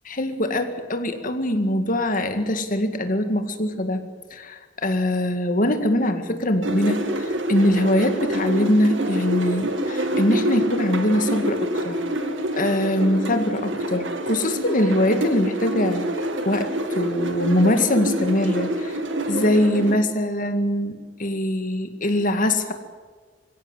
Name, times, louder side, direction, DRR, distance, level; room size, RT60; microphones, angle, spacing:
voice 1, 0.1-12.0 12.5-19.0 19.3-22.7, left 1 dB, 45° left, 8 dB, 2.0 m, -23 dB
sound 1, 6.6-19.9, equal, 70° right, 2.3 m, -26 dB
23.5 x 16.5 x 8.1 m, 1.5 s
head